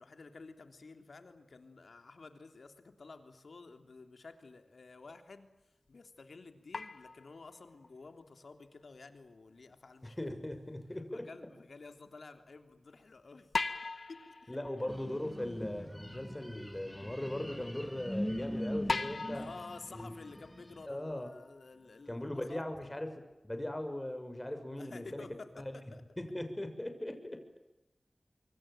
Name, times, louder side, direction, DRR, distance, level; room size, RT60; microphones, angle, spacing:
voice 1, 0.0-10.3 11.1-13.5 14.1-14.5 19.3-22.6 24.8-26.0, left 3 dB, 85° left, 7 dB, 3.3 m, -52 dB
sound 1, 5.9-6.0 6.7-7.9 10.8-10.9 13.5-16.4 16.9-17.0 18.0-18.1 18.9-21.7 22.2-22.3 23.3-23.4, left 3 dB, 70° left, 1.8 m, -40 dB
voice 2, 10.0-11.3 14.5-19.4 19.9-20.1 20.9-21.3 22.1-25.2 25.6-25.7 26.2-27.6, left 1 dB, 20° left, 7 dB, 6.6 m, -39 dB
sound 2, 14.9-20.9, equal, 5° left, 5.4 m, -42 dB
26.0 x 24.0 x 9.1 m, 0.99 s
wide cardioid pair, 50°, 0 cm